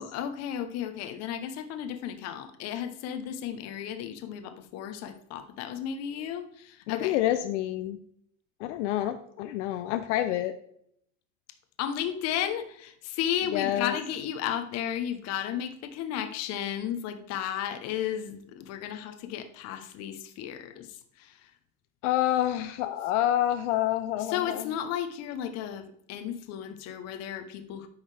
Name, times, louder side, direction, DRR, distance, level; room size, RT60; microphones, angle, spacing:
voice 1, 0.0-7.2 11.8-21.5 24.2-27.9, left 10 dB, 45° left, 9 dB, 0.8 m, -34 dB
voice 2, 6.9-8.0 8.6-10.5 13.5-13.9 22.0-24.6, left 13 dB, 70° left, 10 dB, 0.6 m, -27 dB
8.8 x 5.6 x 3.3 m, 0.71 s
supercardioid pair, 145°, 37 cm